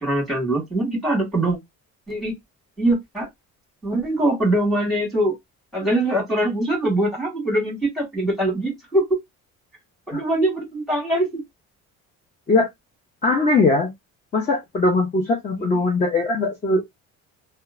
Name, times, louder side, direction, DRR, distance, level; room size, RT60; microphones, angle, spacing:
voice 1, 0.0-1.6 2.1-2.4 2.8-3.3 3.8-5.3 5.7-9.0 10.1-11.4 15.6-15.7, right 1 dB, ahead, 1.5 m, -22 dB
voice 2, 13.2-13.9 14.3-16.8, left 3 dB, 25° left, 0.6 m, -20 dB
2.9 x 2.2 x 2.4 m
cardioid pair, 160°, 30 cm